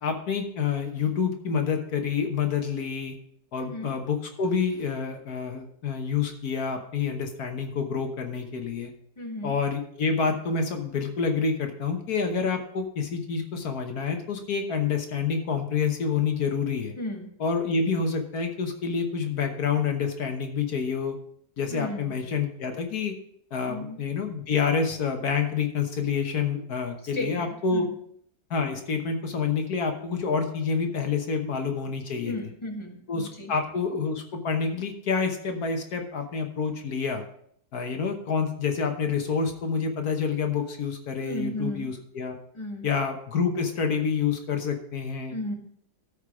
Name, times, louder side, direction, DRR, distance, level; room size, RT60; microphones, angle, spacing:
voice 1, 0.0-3.2 3.5-8.9 9.4-16.9 17.4-21.2 21.6-23.1 23.5-27.9 28.5-32.5 33.1-37.2 37.7-42.3 42.8-45.4, left 5 dB, 65° left, 4 dB, 1.5 m, -28 dB
voice 2, 3.6-3.9 9.2-9.5 17.0-17.3 21.7-22.1 23.7-24.0 27.1-27.9 32.3-33.5 41.2-41.9 42.5-42.9 45.3-45.5, left 1 dB, 20° left, 2 dB, 1.3 m, -34 dB
13.5 x 5.4 x 4.9 m, 0.67 s
omnidirectional pair, 1.8 m